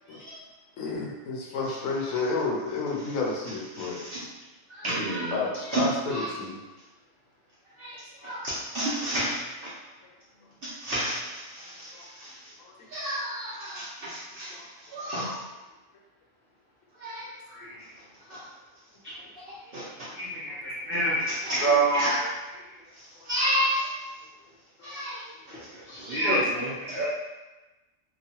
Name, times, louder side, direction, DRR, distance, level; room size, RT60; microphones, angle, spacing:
voice 1, 0.0-0.4 3.0-3.2 3.7-4.3 4.7-6.3 7.7-9.7 10.6-12.5 12.9-15.4 16.9-17.4 18.0-18.5 19.4-20.1 20.9-22.3 22.9-24.1 24.8-27.1, right 1 dB, 55° right, -8 dB, 0.7 m, -32 dB
voice 2, 0.8-4.0 5.3-6.5 11.9-12.0 12.6-12.7 14.5-14.6 19.1-19.2 20.5-20.6 24.8-25.0, left 3 dB, 85° left, -2 dB, 1.0 m, -31 dB
voice 3, 20.1-21.3 21.6-22.0 25.9-27.1, right 2 dB, 15° right, -9 dB, 0.5 m, -26 dB
3.0 x 2.2 x 2.7 m, 1.1 s
omnidirectional pair, 1.4 m